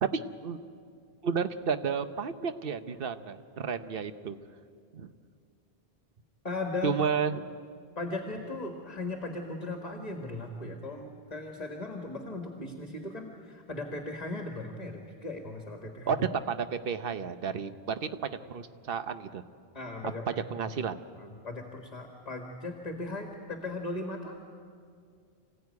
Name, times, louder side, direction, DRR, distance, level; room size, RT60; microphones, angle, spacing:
voice 1, 0.0-0.6 1.2-4.4 4.9-5.1 6.8-7.4 16.1-19.4 20.3-21.0, right 6 dB, 65° right, 10 dB, 1.1 m, -32 dB
voice 2, 6.4-7.0 8.0-16.2 19.7-20.4 21.2-24.4, left 2 dB, 40° left, 3 dB, 1.8 m, -37 dB
26.5 x 16.0 x 9.5 m, 2.3 s
omnidirectional pair, 1.0 m